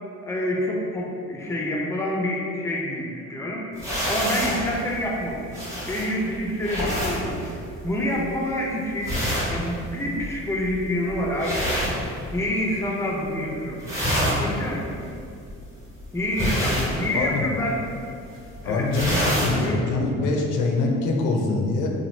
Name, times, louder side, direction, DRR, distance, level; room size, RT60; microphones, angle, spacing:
voice 1, 0.2-3.7 4.0-9.1 9.5-14.9 16.1-17.8 18.6-18.9 19.6-19.8, left 1 dB, 10° left, -2 dB, 0.4 m, -27 dB
sound 1, 3.8-12.7 13.0-13.4 13.7-19.7, equal, 10° right, 1.0 m, -28 dB
voice 2, 17.1-17.5 18.6-21.9, left 3 dB, 85° left, 1 dB, 0.5 m, -24 dB
2.9 x 2.3 x 3.1 m, 2.5 s
cardioid pair, 90°, 30 cm